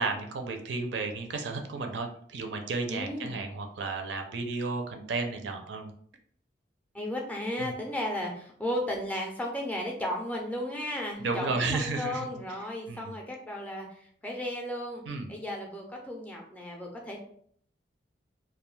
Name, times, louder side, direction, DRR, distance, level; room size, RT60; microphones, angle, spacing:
voice 1, 0.0-5.9 7.6-7.7 11.2-12.3 12.9-13.1 15.1-15.3, right 3 dB, 75° right, 4 dB, 0.4 m, -33 dB
voice 2, 2.9-3.3 6.9-15.0 15.3-17.2, left 1 dB, 10° left, -1 dB, 0.4 m, -34 dB
2.3 x 2.2 x 3.1 m, 0.62 s
head